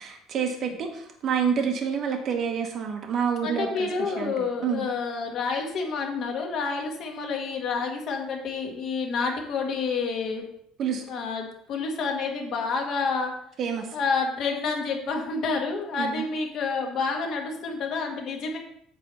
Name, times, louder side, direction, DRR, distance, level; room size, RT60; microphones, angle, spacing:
voice 1, 0.0-3.9 4.2-4.8 10.8-11.0 13.6-13.9 16.0-16.2, right 7 dB, 35° right, 3 dB, 0.9 m, -28 dB
voice 2, 3.4-10.4 11.1-13.3 13.9-18.6, left 4 dB, 40° left, 2 dB, 1.5 m, -29 dB
8.5 x 3.3 x 6.6 m, 0.71 s
cardioid pair, 175°, 0 cm